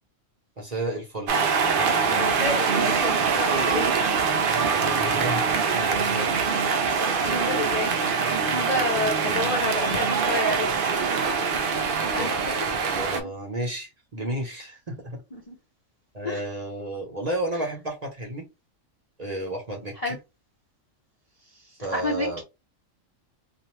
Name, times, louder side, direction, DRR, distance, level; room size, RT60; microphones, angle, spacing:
voice 1, 0.6-2.5 4.5-5.4 5.7-6.3 12.2-15.2 16.1-18.4 19.2-20.2 21.8-22.4, right 1 dB, 35° right, 0.9 m, -33 dB
sound 1, 1.3-13.2, right 5 dB, 60° right, 0.5 m, -24 dB
voice 2, 2.1-4.0 7.0-8.0 8.5-10.8 12.1-12.3 13.1-13.2 15.3-15.5 16.2-16.4 20.0-20.2 21.9-22.4, left 2 dB, 40° left, 0.6 m, -29 dB
2.6 x 2.5 x 3.0 m
omnidirectional pair, 1.4 m